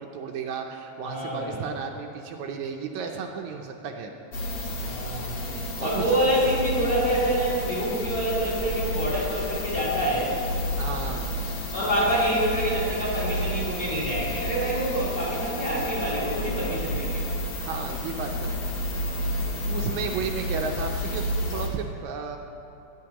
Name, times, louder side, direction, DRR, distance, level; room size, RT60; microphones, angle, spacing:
voice 1, 0.0-4.1 5.8-6.2 10.8-11.3 17.6-18.7 19.7-22.4, right 5 dB, 80° right, 3 dB, 1.9 m, -33 dB
voice 2, 1.0-1.7 4.8-5.4 5.8-10.4 11.7-17.2, right 1 dB, 30° left, -7 dB, 3.1 m, -26 dB
sound 1, 4.3-21.7, left 1 dB, 80° left, 0.9 m, -31 dB
16.0 x 9.7 x 2.9 m, 2.8 s
omnidirectional pair, 3.4 m